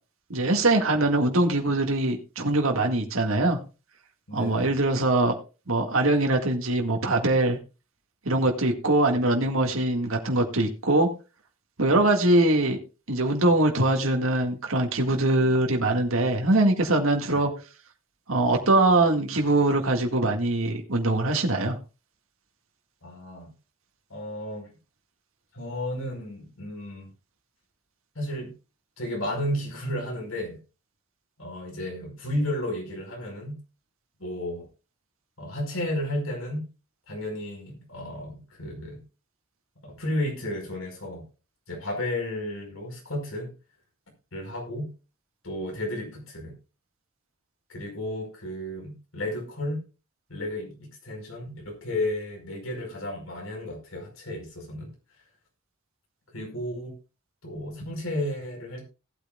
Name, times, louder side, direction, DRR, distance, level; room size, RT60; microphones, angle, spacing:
voice 1, 0.3-3.6 4.3-5.3 5.7-7.6 8.3-11.1 11.8-12.8 13.1-17.5 18.3-21.8, right 2 dB, 80° right, 3 dB, 1.9 m, -22 dB
voice 2, 4.3-4.8 11.9-12.1 17.3-17.5 23.0-23.5 24.1-24.7 25.5-27.1 28.1-28.5 29.0-30.6 31.4-33.6 34.2-34.7 35.4-36.7 37.1-39.0 39.8-41.2 41.7-43.5 44.3-44.9 45.4-46.5 47.7-49.8 50.3-54.9 56.3-56.9 57.4-58.8, left 1 dB, 85° left, 2 dB, 5.0 m, -33 dB
18.0 x 8.9 x 2.4 m, 0.31 s
head